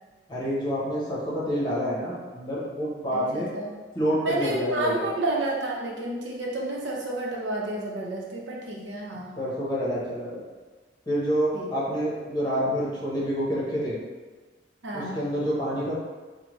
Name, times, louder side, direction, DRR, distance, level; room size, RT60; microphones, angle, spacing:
voice 1, 0.3-3.5 3.9-5.1 9.1-10.4 11.1-14.0 14.9-15.9, equal, 25° left, -7 dB, 1.0 m, -28 dB
voice 2, 3.3-3.7 4.2-9.3 11.5-11.7 14.8-15.2, right 2 dB, 75° right, -2 dB, 0.8 m, -30 dB
4.3 x 2.2 x 3.1 m, 1.3 s
head